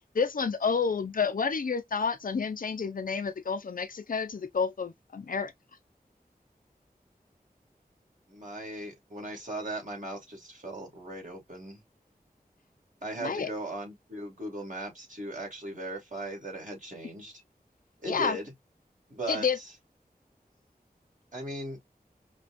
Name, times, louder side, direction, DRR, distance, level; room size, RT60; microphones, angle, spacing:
voice 1, 0.1-5.5 13.2-13.5 18.0-18.4 19.3-19.6, left 5 dB, 60° left, 0.5 m, -29 dB
voice 2, 8.3-11.8 13.0-17.4 18.0-18.5 19.1-19.7 21.3-21.8, right 1 dB, 55° right, 2.5 m, -38 dB
5.1 x 2.4 x 2.5 m
wide cardioid pair, 65°, 16 cm